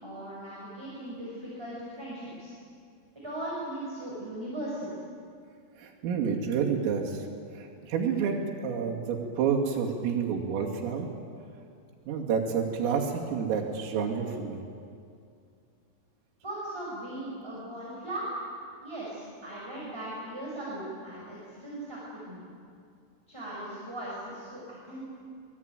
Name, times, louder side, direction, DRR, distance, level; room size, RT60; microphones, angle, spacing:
voice 1, 0.0-2.5 3.2-4.9 16.4-18.3 18.8-22.0 22.3-22.4 23.3-25.1, right 1 dB, 5° right, -6 dB, 4.9 m, -38 dB
voice 2, 5.8-7.3 7.5-11.1 12.1-14.6, right 6 dB, 80° right, 0 dB, 5.1 m, -29 dB
24.5 x 20.5 x 9.1 m, 2.4 s
omnidirectional pair, 6.0 m